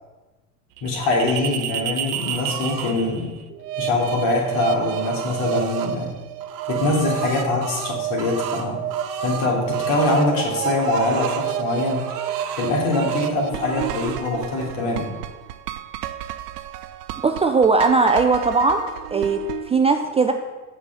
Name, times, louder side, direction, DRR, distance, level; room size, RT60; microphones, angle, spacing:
voice 1, 0.8-3.4 3.8-6.1 6.7-8.8 9.2-12.1 12.5-15.2, left 2 dB, 60° left, -2 dB, 3.3 m, -23 dB
sound 1, 0.8-19.7, right 11 dB, 80° right, 0.7 m, -30 dB
sound 2, 2.1-2.9 4.3-5.9 6.4-10.3 10.6-11.5 11.9-13.3 13.6-14.2, right 7 dB, 45° right, 1.2 m, -34 dB
voice 2, 17.2-18.8 19.1-19.4 19.7-20.3, right 4 dB, 15° right, 5 dB, 0.4 m, -18 dB
7.2 x 6.3 x 6.8 m, 1.2 s
hypercardioid pair, 90°, 47 cm